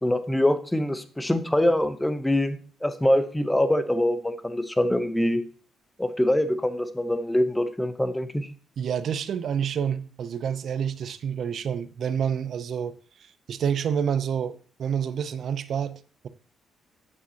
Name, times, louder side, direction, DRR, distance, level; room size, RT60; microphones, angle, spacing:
voice 1, 0.0-5.4 6.0-8.5, left 1 dB, 10° left, 0.8 m, -24 dB
voice 2, 8.8-16.3, right 8 dB, 60° right, 0.5 m, -28 dB
8.6 x 7.1 x 2.8 m
cardioid pair, 90°, 0 cm